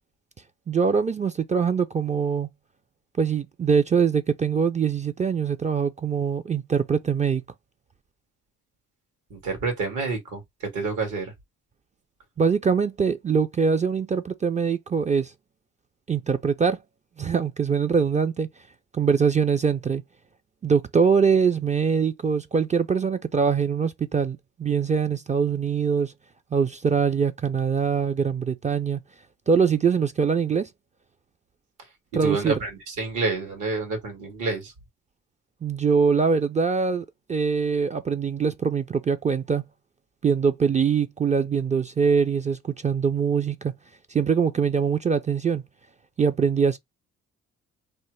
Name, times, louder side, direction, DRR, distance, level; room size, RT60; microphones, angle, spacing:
voice 1, 0.7-2.5 3.2-7.4 12.4-15.3 16.1-16.8 17.2-18.5 18.9-20.0 20.6-26.1 26.5-29.0 29.5-30.7 32.1-32.5 35.6-39.6 40.2-43.7 44.1-45.6 46.2-46.8, right 6 dB, 25° right, 0.3 m, -23 dB
voice 2, 9.3-10.4 10.7-11.3 32.2-34.7, right 3 dB, 80° right, 1.7 m, -28 dB
3.2 x 2.0 x 3.0 m
cardioid pair, 90°, 30 cm